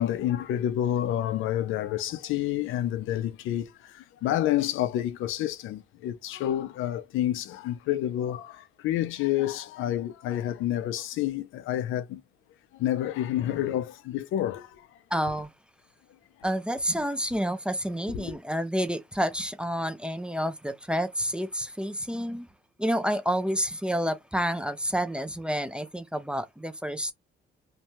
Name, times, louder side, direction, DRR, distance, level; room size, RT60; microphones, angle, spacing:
voice 1, 0.0-12.2 12.7-15.0 18.1-18.4, left 12 dB, 85° left, 0.5 m, -29 dB
voice 2, 15.1-15.5 16.4-22.5 22.8-27.1, equal, 5° right, 0.4 m, -29 dB
2.6 x 2.2 x 2.9 m
cardioid pair, 90°, 20 cm